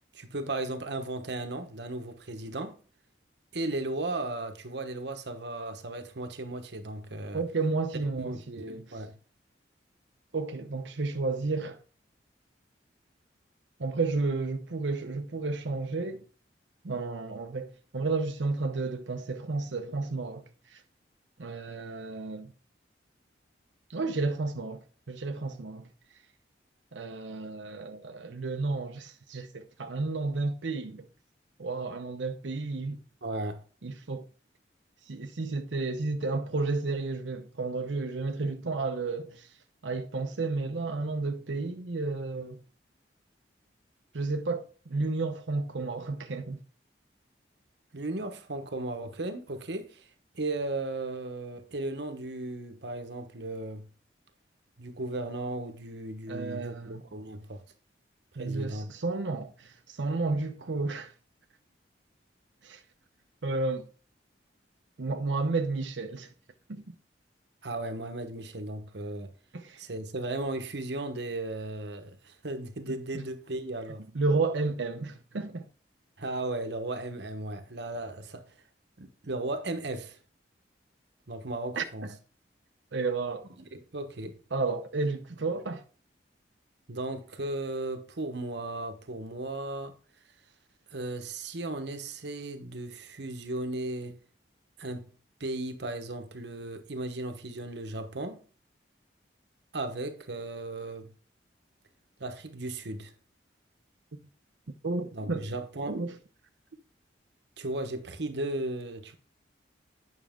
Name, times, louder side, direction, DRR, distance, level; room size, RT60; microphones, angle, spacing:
voice 1, 0.1-2.8 3.5-7.4 8.2-8.4 8.7-9.1 33.2-33.6 47.9-50.1 50.3-53.8 54.8-57.6 58.4-58.9 67.6-69.3 69.8-74.0 76.2-78.4 79.0-80.2 81.3-82.1 83.7-84.3 86.9-89.9 90.9-94.2 94.8-95.1 95.4-98.4 99.7-101.1 102.2-103.1 105.1-106.0 107.6-109.2, right 2 dB, 65° right, 1.1 m, -36 dB
voice 2, 7.3-9.0 10.3-11.8 13.8-16.2 16.8-20.8 21.4-22.5 23.9-25.9 26.9-31.1 31.6-33.0 33.8-34.3 35.1-39.5 39.8-42.6 44.1-46.6 56.3-57.0 58.4-61.1 62.6-62.8 63.4-63.9 65.0-66.3 66.7-66.8 69.5-69.8 72.9-73.2 74.1-75.7 81.8-82.1 82.9-83.5 84.5-85.8 104.1-104.2 104.8-105.5 105.9-106.1, right 3 dB, 85° right, 0.7 m, -32 dB
9.2 x 6.2 x 3.7 m
head